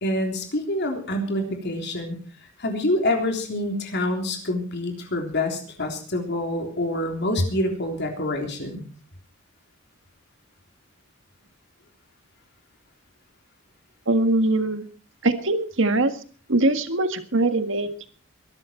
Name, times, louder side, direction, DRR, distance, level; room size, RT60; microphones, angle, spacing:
voice 1, 0.0-2.2 2.6-8.8, left 1 dB, 55° left, 3 dB, 3.6 m, -26 dB
voice 2, 14.1-14.9 15.2-16.1 16.5-18.1, right 2 dB, 60° right, 9 dB, 1.8 m, -22 dB
22.0 x 12.5 x 4.5 m, 0.41 s
head